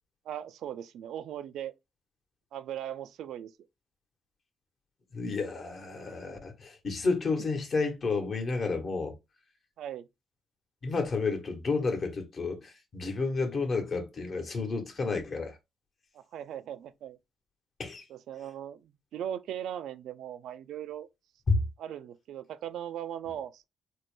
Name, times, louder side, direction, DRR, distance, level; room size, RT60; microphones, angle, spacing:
voice 1, 0.3-1.7 2.5-3.5 9.8-10.1 13.8-13.9 16.1-17.2 18.1-21.1 21.8-23.6, right 10 dB, 80° right, 0.4 m, -39 dB
voice 2, 5.1-9.1 10.8-15.6 17.8-18.0 21.5-21.6, left 4 dB, 45° left, 1.1 m, -31 dB
4.2 x 2.2 x 3.1 m
cardioid pair, 90°, 0 cm